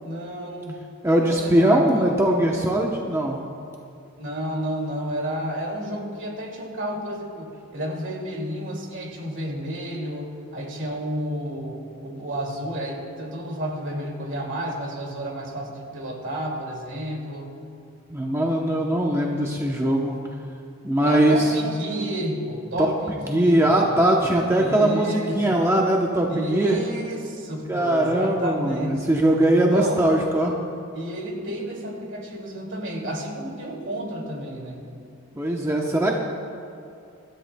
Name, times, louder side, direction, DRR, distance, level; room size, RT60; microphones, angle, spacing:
voice 1, 0.0-2.2 4.2-17.5 21.0-23.8 24.5-25.6 26.3-29.0 29.5-30.0 30.9-34.8, equal, 60° right, 0 dB, 2.4 m, -31 dB
voice 2, 1.0-3.4 18.1-20.2 20.8-21.4 23.3-26.8 27.7-30.5 35.4-36.1, right 1 dB, 15° right, -1 dB, 0.8 m, -21 dB
25.5 x 13.0 x 2.2 m, 2.4 s
head